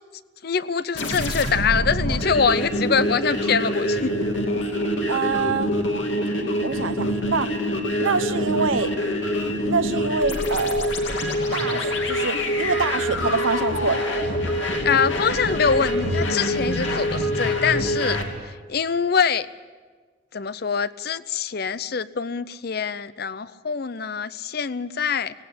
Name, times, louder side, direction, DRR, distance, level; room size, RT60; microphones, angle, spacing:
voice 1, 0.4-4.1 14.8-18.2 18.4-19.5 20.3-25.3, left 6 dB, 50° left, 16 dB, 0.5 m, -24 dB
sound 1, 0.9-18.3, equal, 65° left, 2.7 m, -25 dB
voice 2, 5.1-5.7 6.6-7.5 8.0-8.9 9.7-10.9 11.5-14.0, right 4 dB, 80° right, 11 dB, 1.0 m, -25 dB
17.5 x 17.5 x 8.8 m, 1.4 s
head